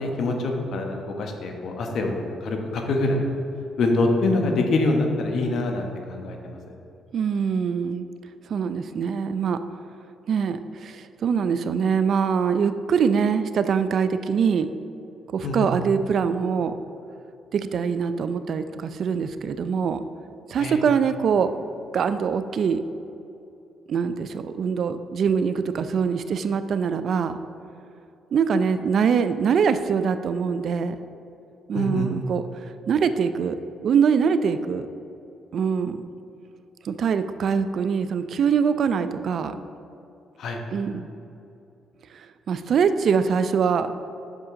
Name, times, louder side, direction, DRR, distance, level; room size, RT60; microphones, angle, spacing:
voice 1, 0.0-3.2 3.8-6.6 15.4-15.7 20.6-20.8 31.7-32.1 40.4-40.6, left 2 dB, 65° left, 3 dB, 1.0 m, -25 dB
voice 2, 7.1-8.1 8.5-9.6 10.3-14.7 15.3-16.7 17.5-20.0 20.5-21.5 21.9-22.8 23.9-27.4 28.3-31.1 31.7-33.6 33.8-34.9 35.5-36.0 36.8-39.6 40.7-41.1 42.1-43.9, right 6 dB, 60° right, 11 dB, 0.4 m, -23 dB
7.3 x 6.4 x 3.7 m, 2.7 s
cardioid pair, 90°, 0 cm